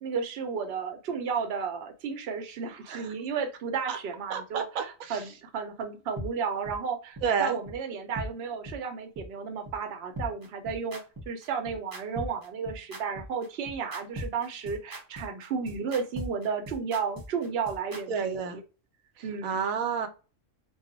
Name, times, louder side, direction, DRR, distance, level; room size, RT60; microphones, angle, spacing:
voice 1, 0.0-11.0 11.3-18.6 19.2-19.6, right 6 dB, 60° right, 0.8 m, -33 dB
voice 2, 4.3-5.2 7.2-7.6 18.1-18.6 19.4-20.1, right 6 dB, 90° right, 1.0 m, -30 dB
sound 1, 6.2-6.3 6.7-6.8 7.2-7.3 7.7-7.8 8.2-8.3 8.7-8.8 9.2-9.3 9.7-9.8 10.2-18.0, equal, 25° right, 0.5 m, -39 dB
2.4 x 2.1 x 3.8 m
omnidirectional pair, 1.4 m